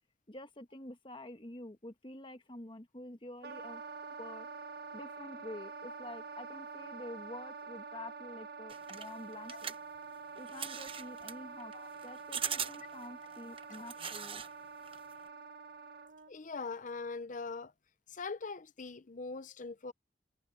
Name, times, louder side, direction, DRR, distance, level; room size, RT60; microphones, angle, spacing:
voice 1, 0.3-3.9 4.2-4.5 4.9-9.7 10.3-11.7 12.0-14.4, left 1 dB, 30° left, 1.5 m, -48 dB
Wind instrument woodwind instrument, 3.4-16.3, right 4 dB, 65° right, 1.8 m, -47 dB
sound 1, 8.7-14.5 14.8-15.3, right 7 dB, 30° right, 1.1 m, -41 dB
voice 2, 16.3-17.7 18.1-19.9, left 4 dB, 45° left, 0.8 m, -42 dB
head